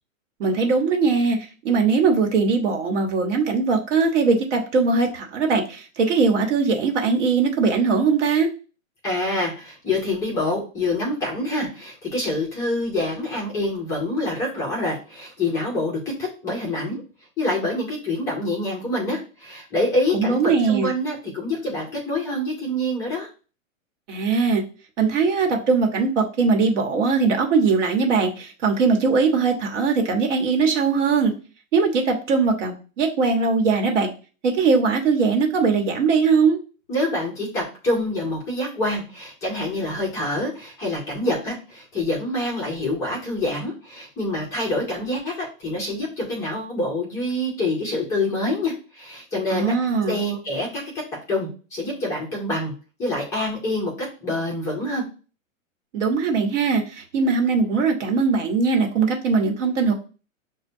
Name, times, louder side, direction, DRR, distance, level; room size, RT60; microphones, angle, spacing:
voice 1, 0.4-1.4 1.6-8.5 20.1-20.9 24.1-24.6 25.0-31.3 31.7-34.1 34.4-36.6 49.5-50.2 55.9-59.9, right 4 dB, 60° right, 2 dB, 1.1 m, -20 dB
voice 2, 9.0-17.0 17.4-23.3 36.9-49.7 50.1-50.8 51.3-52.7 53.0-55.0, left 1 dB, 10° left, -3 dB, 0.4 m, -26 dB
6.3 x 2.2 x 2.6 m, 0.36 s
hypercardioid pair, 145°, 40 cm